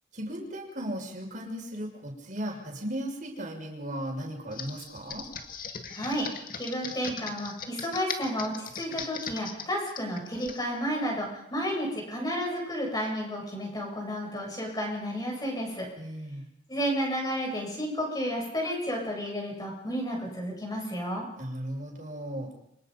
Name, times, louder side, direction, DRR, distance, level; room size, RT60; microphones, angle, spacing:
voice 1, 0.1-5.3 16.0-16.4 21.4-22.5, equal, 45° right, 1 dB, 5.9 m, -36 dB
Computer keyboard, 4.5-10.6, left 6 dB, 45° left, 2.1 m, -39 dB
voice 2, 5.9-6.3 6.6-15.9 16.7-21.3, equal, 20° left, 0 dB, 7.9 m, -32 dB
29.5 x 25.5 x 5.4 m, 0.79 s
head